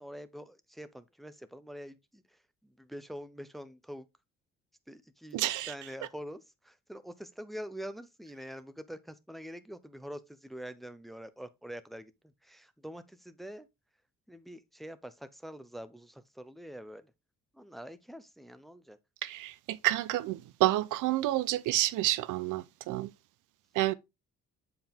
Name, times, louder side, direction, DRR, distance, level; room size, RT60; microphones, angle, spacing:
voice 1, 0.0-2.2 2.6-4.1 4.9-5.4 5.7-12.1 12.4-13.7 14.3-17.1 17.5-19.0, equal, ahead, 0.7 m, -45 dB
voice 2, 5.3-5.7 19.2-23.1 23.7-23.9, right 16 dB, 85° right, 0.6 m, -29 dB
7.6 x 4.6 x 3.5 m
cardioid pair, 90°, 30 cm